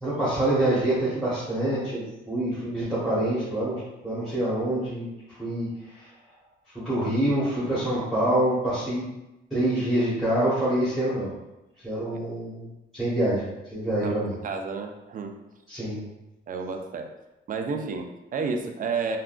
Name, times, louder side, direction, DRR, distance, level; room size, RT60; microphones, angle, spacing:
voice 1, 0.0-5.7 6.0-6.1 6.8-9.1 9.5-11.3 11.8-12.6 12.9-14.3 15.7-16.0, right 1 dB, ahead, -11 dB, 1.2 m, -26 dB
voice 2, 14.4-15.4 16.5-17.1 17.5-19.2, right 4 dB, 45° right, 4 dB, 0.4 m, -31 dB
3.6 x 2.3 x 2.4 m, 0.96 s
cardioid pair, 90°, 20 cm